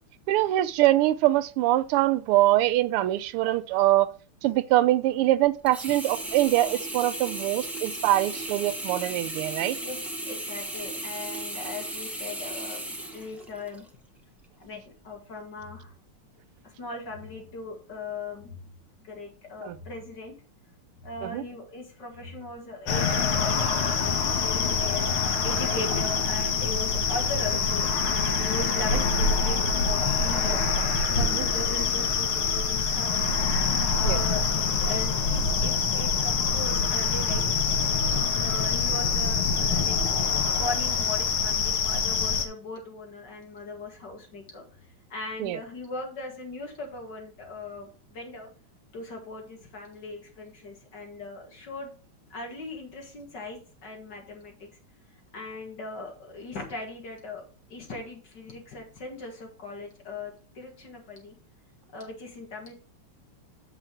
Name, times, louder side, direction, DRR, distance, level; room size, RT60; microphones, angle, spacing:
voice 1, 0.3-4.1 4.4-9.8 19.6-19.8 21.2-21.4 31.3-31.4 34.0-34.2 45.4-45.6, right 15 dB, 85° right, 1.5 m, -23 dB
Sink (filling or washing), 5.7-13.9 14.4-14.5, right 1 dB, ahead, 0.7 m, -35 dB
voice 2, 9.8-12.8 13.1-13.8 14.6-15.9 16.6-18.7 19.0-20.3 21.0-30.7 31.1-33.3 33.9-37.4 38.4-40.3 40.6-48.5 48.9-51.9 52.3-54.7 55.1-57.4 57.7-61.3 61.9-62.7, left 2 dB, 50° left, 2.6 m, -39 dB
sound 1, 22.9-42.5, left 5 dB, 75° left, 2.1 m, -25 dB
7.6 x 5.8 x 4.5 m
omnidirectional pair, 2.4 m